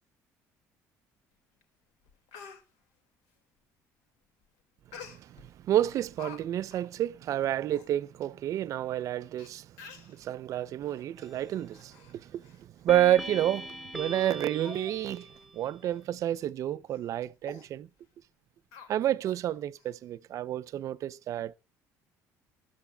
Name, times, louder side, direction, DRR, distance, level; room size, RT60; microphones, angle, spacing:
Speech, 1.6-1.7 2.1-2.6 4.9-5.5 5.9-6.4 6.7-6.9 7.4-7.5 7.7-7.9 8.7-8.8 9.4-9.5 9.8-10.2 10.8-11.0 11.5-12.1 12.4-12.6 13.0-13.1 13.7-13.8 14.2-14.3 14.6-15.0 15.3-15.4 15.8-16.0 16.4-16.5 16.9-17.1 17.4-17.7 18.7-19.4 19.8-19.9, left 6 dB, 90° left, 2.3 m, -48 dB
voice 1, 4.9-17.9 18.9-21.5, right 12 dB, 55° right, 0.6 m, -30 dB
sound 1, 11.2-11.7 12.9-15.6, right 1 dB, ahead, 0.8 m, -41 dB
20.5 x 13.5 x 2.3 m
cardioid pair, 105°, 6 cm